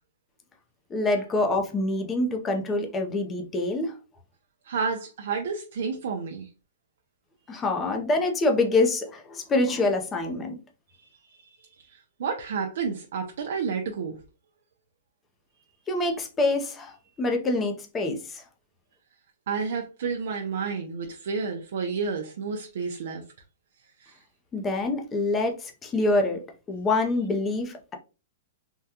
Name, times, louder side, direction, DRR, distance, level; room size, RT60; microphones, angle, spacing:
voice 1, 0.9-3.9 7.5-10.6 15.9-18.4 24.5-26.4 26.7-27.9, left 2 dB, 15° left, 0.5 m, -26 dB
voice 2, 4.6-6.5 10.9-14.2 19.5-23.2 24.0-24.2, right 5 dB, 65° right, 0.5 m, -31 dB
3.5 x 2.2 x 2.8 m
hypercardioid pair, 165°, 0 cm